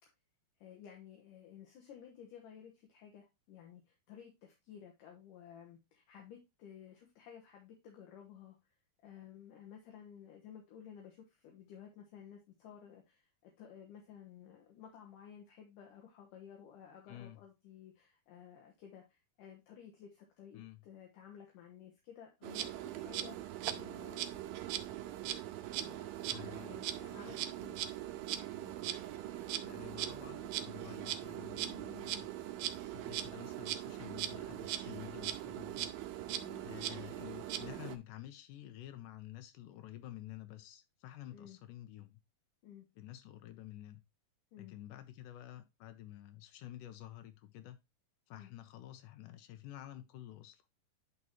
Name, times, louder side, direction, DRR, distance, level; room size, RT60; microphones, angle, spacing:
voice 1, 0.6-8.6 9.0-24.3 25.8-28.0 28.5-28.7 36.4-36.6 41.3-41.6 42.6-42.9 44.5-44.8 48.4-48.5, left 8 dB, 70° left, 2.4 m, -54 dB
Insect, 22.4-38.0, right 12 dB, 80° right, 2.2 m, -40 dB
voice 2, 26.3-26.8 27.3-27.4 29.6-32.3 32.9-35.9 36.6-42.2 43.0-44.0 44.6-47.8 48.3-50.6, left 14 dB, 85° left, 1.9 m, -50 dB
11.0 x 4.1 x 2.9 m
omnidirectional pair, 4.4 m